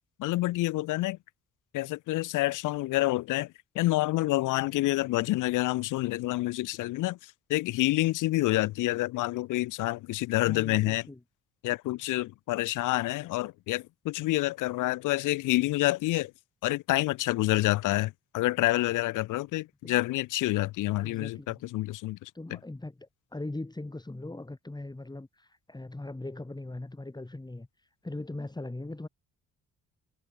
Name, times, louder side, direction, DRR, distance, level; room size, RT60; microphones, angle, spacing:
voice 1, 0.2-1.2 1.7-11.1 11.6-16.3 16.6-22.6, left 18 dB, 90° left, 1.0 m, -28 dB
voice 2, 10.5-11.2 19.8-20.0 21.0-21.6 22.3-29.1, left 2 dB, 15° left, 6.6 m, -40 dB
cardioid pair, 90°, 30 cm